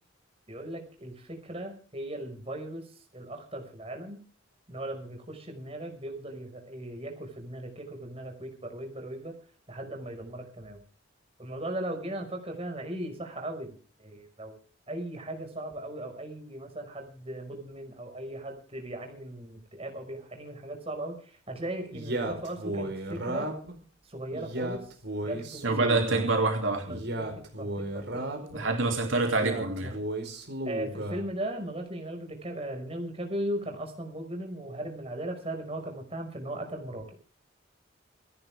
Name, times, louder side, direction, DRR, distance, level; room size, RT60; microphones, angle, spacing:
voice 1, 0.5-4.2 4.7-9.4 9.7-10.8 11.4-14.6 14.9-23.5 24.0-26.0 26.9-27.2 27.6-28.7 29.8-29.9 30.6-37.0, right 1 dB, 30° right, 4 dB, 5.5 m, -38 dB
Male speech man speaking, 21.9-23.7 24.3-26.3 26.9-28.6 29.3-31.3, right 1 dB, 60° right, 4.7 m, -34 dB
voice 2, 25.6-27.0 28.5-30.0, right 3 dB, 75° right, 3 dB, 3.0 m, -26 dB
28.0 x 11.0 x 3.6 m, 0.41 s
head